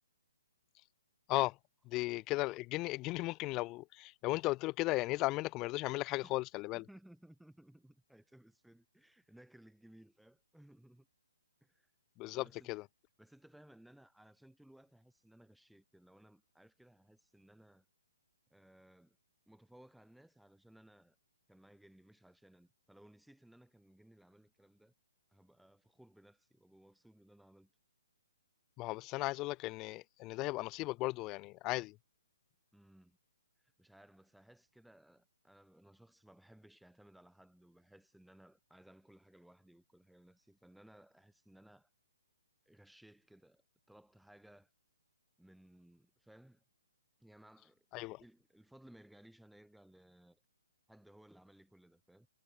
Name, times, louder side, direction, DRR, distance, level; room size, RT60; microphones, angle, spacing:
voice 1, 1.9-6.8 12.2-12.8 28.8-32.0 47.9-48.2, left 21 dB, 25° left, 0.3 m, -36 dB
voice 2, 6.7-11.1 11.6-11.9 12.3-12.7 13.2-17.8 18.5-19.2 19.5-21.2 21.5-24.9 25.3-27.7 32.7-33.2 33.6-41.9 42.6-43.6 43.9-44.7 45.4-46.6 47.2-47.8 48.2-50.4 50.9-52.3, right 1 dB, ahead, 3.1 m, -61 dB
figure-of-eight pair, 130°, 0 cm